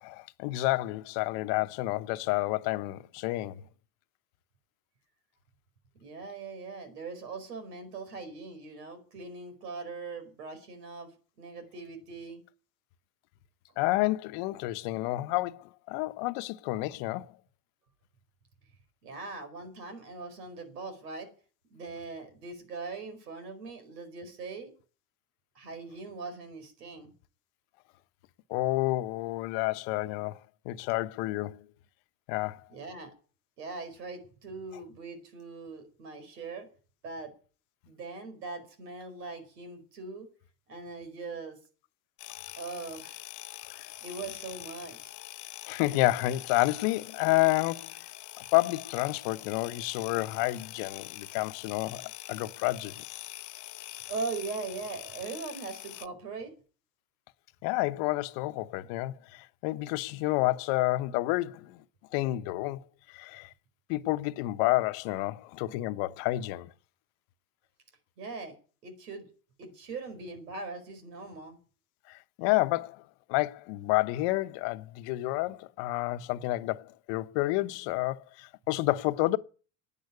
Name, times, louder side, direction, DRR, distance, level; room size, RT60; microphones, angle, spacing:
voice 1, 0.0-3.6 13.8-17.3 28.5-30.4 30.6-31.6 32.3-32.6 43.7-43.9 45.7-48.0 48.4-53.0 57.6-61.8 62.1-63.5 63.9-66.7 72.1-73.0 73.3-79.4, left 18 dB, 65° left, 1.1 m, -30 dB
voice 2, 6.0-11.1 11.4-12.4 19.0-21.3 21.7-24.7 25.5-27.1 32.7-33.1 33.6-36.7 37.0-37.3 37.8-40.3 40.7-41.6 42.6-43.2 44.0-45.1 54.1-56.5 68.2-68.6 68.8-69.3 69.6-71.6, right 4 dB, 90° right, 4.9 m, -40 dB
sound 1, 42.2-56.1, left 15 dB, 40° left, 0.8 m, -44 dB
11.0 x 9.5 x 9.5 m
hypercardioid pair, 95°, 46 cm